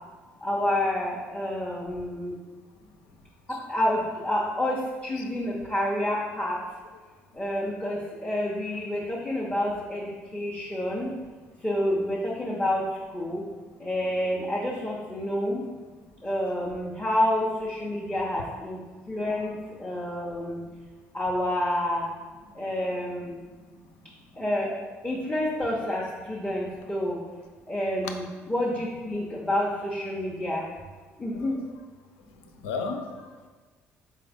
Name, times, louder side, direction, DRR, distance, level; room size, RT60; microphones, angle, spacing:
voice 1, 0.4-2.3 3.7-4.8 5.0-6.6 7.4-10.0 10.3-11.1 11.6-12.8 13.1-13.4 13.8-15.6 16.2-18.8 19.1-19.5 19.8-20.6 21.1-22.1 22.6-23.4 24.4-24.7 25.0-26.0 26.3-27.2 27.7-28.2 28.5-30.6 31.2-31.6, left 1 dB, 20° left, -5 dB, 0.9 m, -28 dB
voice 2, 32.6-33.5, left 4 dB, 90° left, 6 dB, 0.4 m, -35 dB
3.8 x 3.6 x 3.5 m, 1.4 s
hypercardioid pair, 60°, 6 cm